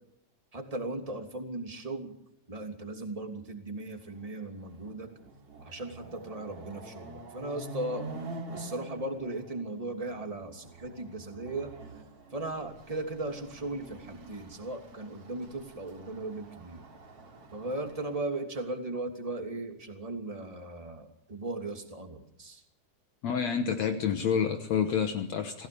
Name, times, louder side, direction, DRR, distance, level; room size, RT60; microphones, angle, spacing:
voice 1, 0.5-2.1 2.5-5.1 5.6-8.1 8.5-11.7 12.3-16.8 17.5-22.6, right 2 dB, 10° right, 4 dB, 2.7 m, -37 dB
Chatter / Car passing by / Motorcycle, 4.2-4.3 4.7-18.2, right 2 dB, 50° right, 3.8 m, -46 dB
voice 2, 23.2-25.7, left 7 dB, 65° left, 6 dB, 2.4 m, -28 dB
28.0 x 17.0 x 7.0 m, 0.74 s
omnidirectional pair, 3.5 m